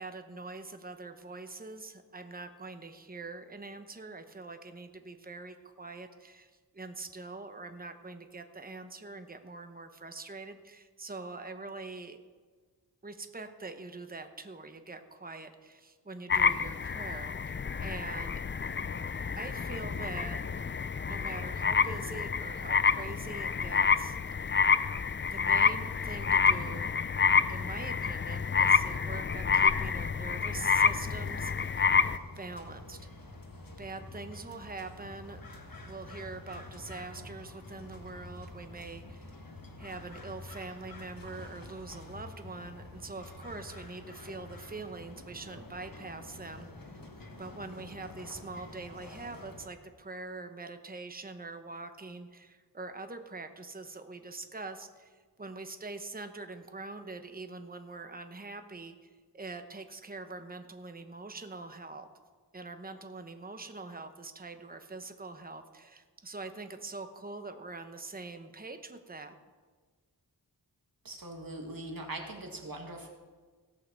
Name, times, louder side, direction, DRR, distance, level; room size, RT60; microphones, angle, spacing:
voice 1, 0.0-12.2 13.0-18.4 19.4-20.4 21.0-24.2 25.3-26.9 27.5-31.7 32.4-33.0 33.8-35.4 35.9-39.3 39.8-47.0 47.4-59.1 59.3-62.1 62.5-69.3, right 3 dB, 20° right, 7 dB, 0.9 m, -44 dB
sound 1, 16.3-32.2, left 6 dB, 30° left, 0.4 m, -28 dB
sound 2, 30.8-49.7, left 2 dB, 55° left, 1.4 m, -48 dB
voice 2, 71.0-73.1, right 2 dB, 60° right, 1 dB, 2.0 m, -41 dB
17.0 x 5.7 x 6.9 m, 1.4 s
wide cardioid pair, 70°, 40 cm